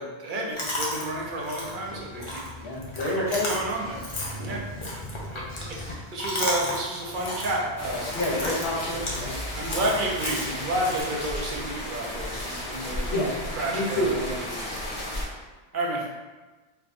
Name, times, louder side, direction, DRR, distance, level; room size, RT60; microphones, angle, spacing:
voice 1, 0.0-2.8 3.2-4.0 4.3-4.6 5.3-8.5 9.6-13.2 13.5-14.8 15.7-16.1, right 1 dB, 55° right, -3 dB, 0.8 m, -31 dB
Chewing mastication, 0.6-11.0, left 1 dB, 35° left, 0.6 m, -34 dB
voice 2, 2.6-3.6 4.3-4.6 8.1-9.4 13.1-14.4, left 1 dB, 70° left, -4 dB, 1.0 m, -29 dB
sound 1, 7.8-15.2, left 1 dB, 55° left, 1.1 m, -34 dB
4.6 x 2.2 x 2.5 m, 1.2 s
omnidirectional pair, 1.1 m